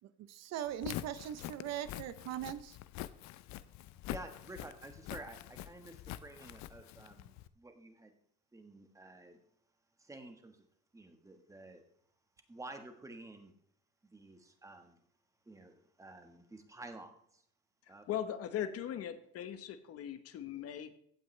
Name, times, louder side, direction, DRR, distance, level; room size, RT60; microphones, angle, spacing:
voice 1, 0.3-2.8, right 11 dB, 60° right, 0.8 m, -40 dB
Walk footsteps, 0.7-7.5, left 14 dB, 70° left, 0.6 m, -45 dB
voice 2, 4.0-8.1 8.5-9.4 10.0-10.6 10.9-11.8 12.5-13.5 14.0-15.0 15.4-17.4 17.9-18.1, right 2 dB, 10° right, 1.4 m, -51 dB
voice 3, 17.9-20.9, left 10 dB, 55° left, 1.0 m, -39 dB
15.5 x 8.9 x 3.3 m
cardioid pair, 150°, 29 cm